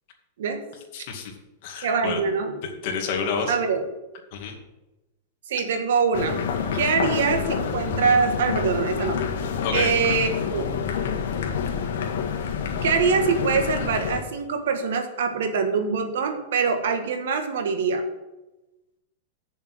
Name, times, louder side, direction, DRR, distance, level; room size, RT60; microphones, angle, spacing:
voice 1, 0.9-1.3 1.6-2.2 2.8-3.6 4.3-4.6 9.6-9.9, left 5 dB, 55° left, 2 dB, 2.3 m, -29 dB
voice 2, 1.8-2.6 3.5-3.9 5.5-6.4 6.7-9.2 9.7-10.7 12.8-18.0, right 5 dB, 80° right, 7 dB, 1.6 m, -24 dB
sound 1, 6.1-14.2, left 6 dB, 80° left, 1.6 m, -28 dB
8.3 x 7.1 x 7.6 m, 1.0 s
supercardioid pair, 150°, 0 cm